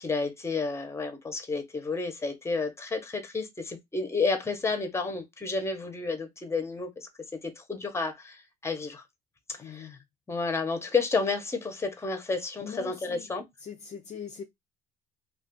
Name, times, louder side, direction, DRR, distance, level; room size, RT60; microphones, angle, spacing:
voice 1, 0.0-7.1 7.4-9.0 9.5-10.0 10.3-13.4, left 4 dB, 15° left, 0.8 m, -31 dB
voice 2, 9.6-10.0 12.6-13.3 13.6-14.4, left 7 dB, 40° left, 0.5 m, -41 dB
2.4 x 2.4 x 3.6 m
cardioid pair, 110°, 17 cm